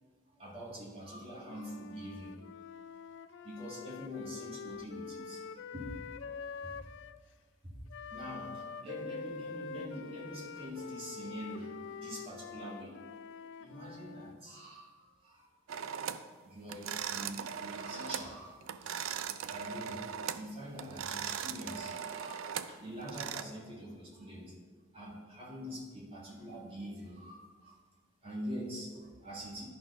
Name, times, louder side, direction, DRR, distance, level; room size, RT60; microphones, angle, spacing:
voice 1, 0.3-2.4 3.4-5.4 5.7-6.0 6.6-6.7 7.6-7.8 8.1-13.0 13.6-14.9 15.2-15.5 16.4-18.6 19.4-20.1 20.3-24.5 24.9-27.8 28.2-29.7, equal, 30° right, -5 dB, 2.1 m, -44 dB
Wind instrument woodwind instrument, 1.4-7.2 7.9-14.4, left 5 dB, 65° left, 0.3 m, -45 dB
sound 1, 15.7-16.3 16.7-18.3 18.6-20.5 20.8-23.4, right 8 dB, 90° right, 0.4 m, -39 dB
11.0 x 4.3 x 5.5 m, 1.5 s
head